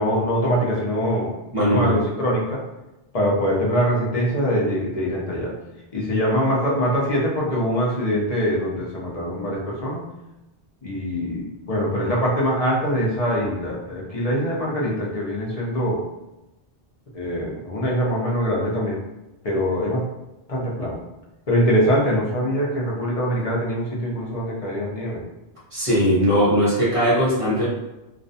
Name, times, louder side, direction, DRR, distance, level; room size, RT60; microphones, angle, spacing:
voice 1, 0.0-2.6 3.1-5.5 5.9-10.0 10.8-16.0 17.1-19.0 19.4-20.0 20.5-21.0 21.5-25.2 26.2-26.3, equal, 45° left, -4 dB, 0.5 m, -23 dB
voice 2, 1.5-2.0 25.7-27.7, equal, 35° right, -7 dB, 0.7 m, -19 dB
2.4 x 2.1 x 2.6 m, 0.96 s
omnidirectional pair, 1.1 m